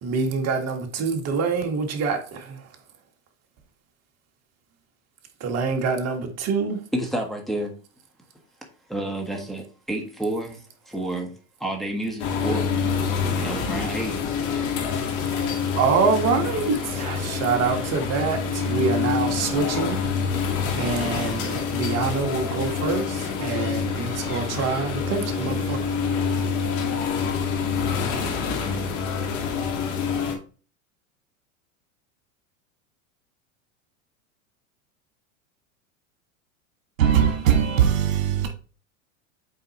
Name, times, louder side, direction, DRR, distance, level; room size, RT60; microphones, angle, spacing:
voice 1, 0.0-2.6 5.4-6.8 15.4-20.0 20.4-25.9 26.3-26.4, right 5 dB, 40° right, 1.6 m, -26 dB
voice 2, 6.9-7.7 8.9-10.6 10.9-11.3 11.6-12.7 13.4-14.2, right 1 dB, ahead, 1.5 m, -29 dB
sound 1, 12.2-30.4, left 6 dB, 55° left, 2.0 m, -26 dB
voice 3, 37.0-38.5, right 9 dB, 70° right, 1.5 m, -20 dB
8.0 x 4.2 x 3.0 m
hypercardioid pair, 100°, 41 cm